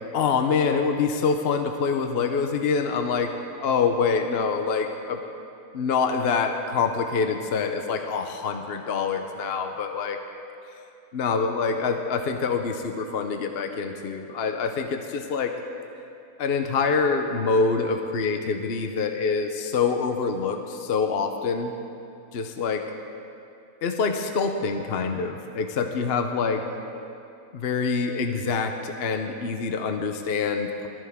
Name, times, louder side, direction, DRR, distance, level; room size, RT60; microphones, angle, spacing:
voice 1, 0.1-3.3 3.6-5.2 5.7-10.2 11.1-15.5 16.4-21.7 22.3-22.8 23.8-26.6 27.5-30.9, left 5 dB, 50° left, 5 dB, 0.8 m, -25 dB
18.0 x 13.5 x 3.6 m, 2.6 s
omnidirectional pair, 1.7 m